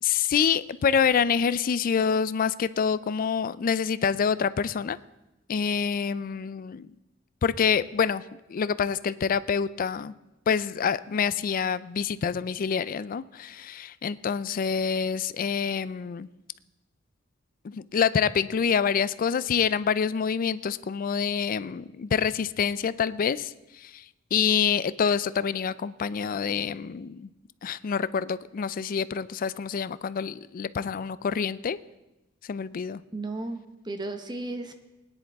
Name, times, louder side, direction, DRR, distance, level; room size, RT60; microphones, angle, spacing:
voice 1, 0.0-5.0 5.5-6.9 7.4-8.2 8.5-10.1 10.5-16.3 17.6-24.1 24.3-27.3 27.6-31.8 32.4-33.0, left 6 dB, 45° left, 17 dB, 0.4 m, -26 dB
voice 2, 33.1-34.7, right 2 dB, 20° right, 7 dB, 0.9 m, -34 dB
20.5 x 10.0 x 3.5 m, 0.98 s
head